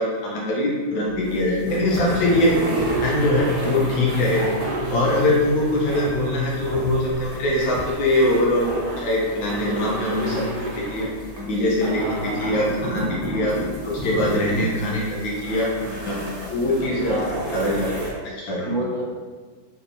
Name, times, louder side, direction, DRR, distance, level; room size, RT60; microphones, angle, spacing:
voice 1, 0.0-2.6 3.0-4.5 4.9-11.1 11.4-13.6 13.8-16.2 16.5-17.2 17.5-18.0 18.4-18.8, left 1 dB, 85° left, -4 dB, 1.5 m, -22 dB
sound 1, 1.1-18.1, right 1 dB, 40° right, 0.9 m, -31 dB
voice 2, 11.9-12.5 17.1-17.6 18.3-19.0, right 1 dB, 90° right, -3 dB, 1.6 m, -31 dB
4.3 x 2.6 x 2.8 m, 1.4 s
omnidirectional pair, 2.1 m